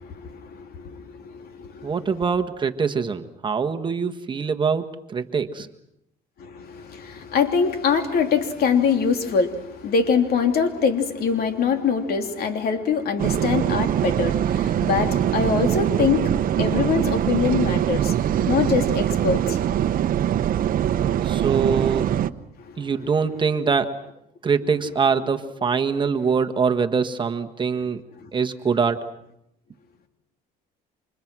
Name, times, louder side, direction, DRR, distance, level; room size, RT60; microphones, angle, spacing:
voice 1, 0.0-1.9 6.4-19.8 22.6-22.9 28.2-28.3, left 6 dB, 65° left, 6 dB, 3.1 m, -24 dB
voice 2, 1.8-5.7 21.2-22.1 22.8-23.9 24.4-28.0 28.3-29.1, right 5 dB, 30° right, 5 dB, 1.5 m, -23 dB
sound 1, 13.2-22.3, right 10 dB, 55° right, 0.9 m, -22 dB
30.0 x 26.0 x 6.2 m, 0.80 s
cardioid pair, 110°, 17 cm